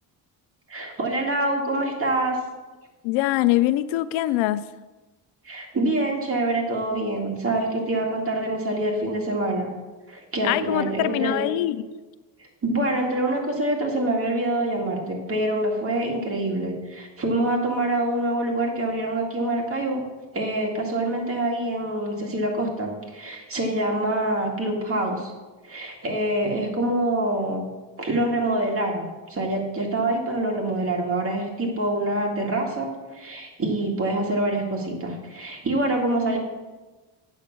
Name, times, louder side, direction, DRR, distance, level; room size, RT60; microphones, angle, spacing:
voice 1, 0.7-2.4 5.4-9.7 10.1-11.5 12.6-20.0 20.3-25.3 25.6-27.6 28.0-36.4, right 1 dB, 30° right, 0 dB, 2.1 m, -25 dB
voice 2, 3.0-4.7 10.4-11.8, left 15 dB, 85° left, 15 dB, 0.6 m, -23 dB
8.3 x 5.9 x 6.9 m, 1.2 s
cardioid pair, 125°, 45 cm